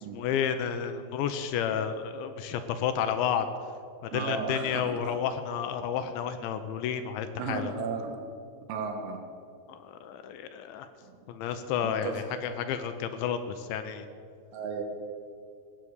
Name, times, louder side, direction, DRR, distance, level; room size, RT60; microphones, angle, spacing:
voice 1, 0.1-3.5 4.0-7.7 9.7-10.9 11.3-14.1, left 8 dB, 85° left, 9 dB, 2.8 m, -31 dB
voice 2, 4.1-5.1 7.4-8.2 8.7-9.2 11.1-11.2 12.0-12.3 14.5-14.8, right 4 dB, 75° right, 4 dB, 3.5 m, -34 dB
16.5 x 7.4 x 8.1 m, 2.3 s
omnidirectional pair, 5.5 m